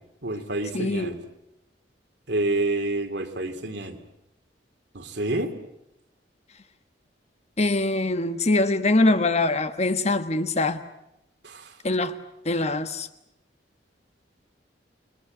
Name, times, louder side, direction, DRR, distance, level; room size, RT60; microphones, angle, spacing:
voice 1, 0.2-1.2 2.3-4.0 4.9-5.5 11.4-11.5, right 2 dB, 70° right, 2.7 m, -28 dB
voice 2, 0.7-1.2 7.6-10.8 11.8-12.1 12.4-13.1, left 2 dB, 35° left, 1.3 m, -23 dB
30.0 x 20.5 x 8.0 m
head